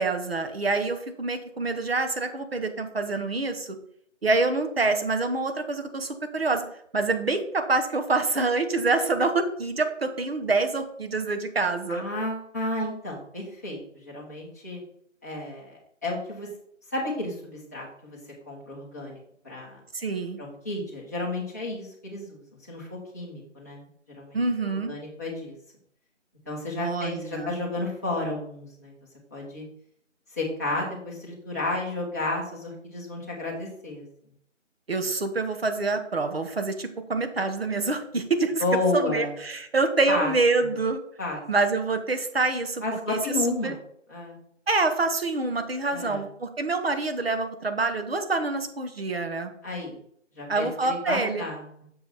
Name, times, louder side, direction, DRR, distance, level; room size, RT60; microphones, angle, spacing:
voice 1, 0.0-3.8 4.2-6.6 6.9-12.0 19.9-20.4 24.3-24.9 26.8-27.6 34.9-38.6 38.9-41.0 41.5-43.2 43.6-43.8 44.7-49.5 50.5-51.4, right 3 dB, 50° right, 7 dB, 1.2 m, -26 dB
voice 2, 11.9-13.8 14.0-14.8 15.2-16.5 16.9-18.2 18.5-19.2 19.4-19.8 20.4-22.4 22.7-23.8 24.2-24.4 24.9-25.5 26.5-28.9 29.3-29.6 30.3-34.0 38.6-39.3 40.1-40.3 41.2-41.4 42.8-43.8 44.1-44.4 45.9-46.2 49.6-50.0 50.3-51.7, left 2 dB, 15° left, -6 dB, 1.1 m, -31 dB
6.9 x 5.3 x 4.2 m, 0.67 s
figure-of-eight pair, 165°, 38 cm